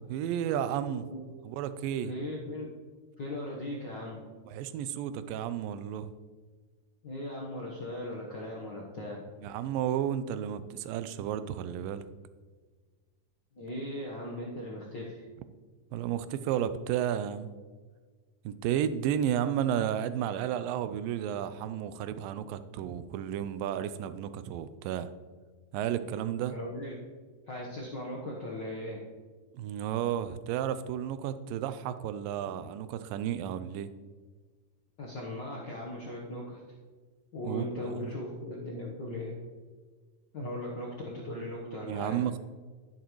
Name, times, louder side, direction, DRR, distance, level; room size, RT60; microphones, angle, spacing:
voice 1, 0.1-1.1 1.5-2.1 4.5-6.1 9.4-12.1 15.9-17.5 18.5-25.1 25.7-26.6 29.5-33.9 37.4-37.6 37.9-38.1 41.9-42.4, right 10 dB, 85° right, 12 dB, 2.3 m, -32 dB
voice 2, 2.0-2.7 3.2-4.2 7.0-9.2 13.5-15.2 26.4-27.0 27.5-29.0 32.5-32.6 35.0-36.6 37.3-39.4 40.3-42.2, left 1 dB, 75° left, -4 dB, 1.0 m, -38 dB
11.5 x 10.5 x 3.1 m, 1.5 s
omnidirectional pair, 4.0 m